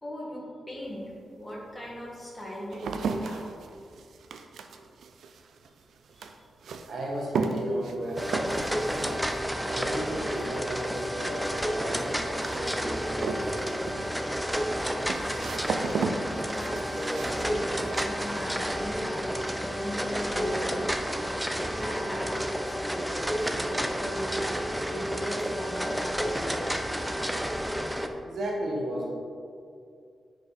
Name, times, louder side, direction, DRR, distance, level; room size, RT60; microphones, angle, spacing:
voice 1, 0.0-1.0 1.4-3.4 6.2-6.3 16.4-20.9 21.8-24.5 24.8-26.7, equal, 15° left, -5 dB, 1.8 m, -38 dB
sound 1, 0.9-1.0 1.7-18.8 19.1-19.7, right 4 dB, 90° right, 0.5 m, -36 dB
voice 2, 6.9-9.2 9.6-13.7 28.2-29.1, right 1 dB, 60° right, -2 dB, 1.4 m, -35 dB
sound 2, 8.2-28.1, equal, 5° right, 0.5 m, -31 dB
9.8 x 5.3 x 4.2 m, 2.4 s
wide cardioid pair, 165°, 0 cm